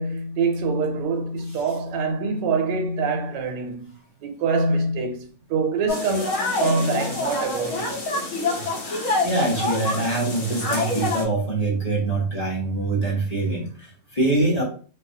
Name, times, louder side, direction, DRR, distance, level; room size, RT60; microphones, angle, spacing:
voice 1, 0.0-3.9 4.2-5.2 5.5-8.0, right 4 dB, 85° right, 1.3 m, -25 dB
sound 1, 5.9-11.2, left 2 dB, 60° left, 1.0 m, -26 dB
voice 2, 9.2-14.6, right 2 dB, 35° left, 0.7 m, -24 dB
3.8 x 2.3 x 2.7 m
omnidirectional pair, 1.8 m